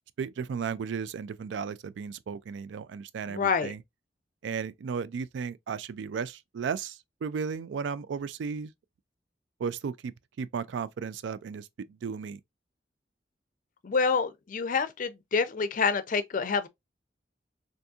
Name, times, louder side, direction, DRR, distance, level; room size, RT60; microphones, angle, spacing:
voice 1, 0.2-3.8 4.4-8.7 9.6-10.1 10.4-12.4, right 6 dB, 90° right, 0.3 m, -35 dB
voice 2, 3.3-3.7 13.8-16.7, left 5 dB, 50° left, 0.5 m, -27 dB
3.5 x 2.6 x 2.7 m
head